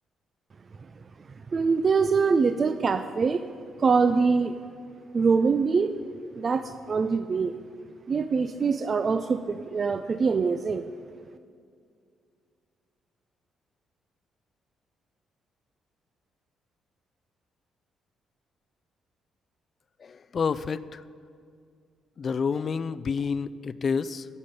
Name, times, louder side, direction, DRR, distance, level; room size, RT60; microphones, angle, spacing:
voice 1, 1.5-3.5 3.8-4.6 5.1-5.9 6.4-7.6 8.1-10.8, right 5 dB, 40° right, 10 dB, 0.3 m, -24 dB
voice 2, 20.0-21.0 22.2-24.3, left 5 dB, 45° left, 15 dB, 0.3 m, -29 dB
14.0 x 5.5 x 5.3 m, 2.2 s
cardioid pair, 90°, 0 cm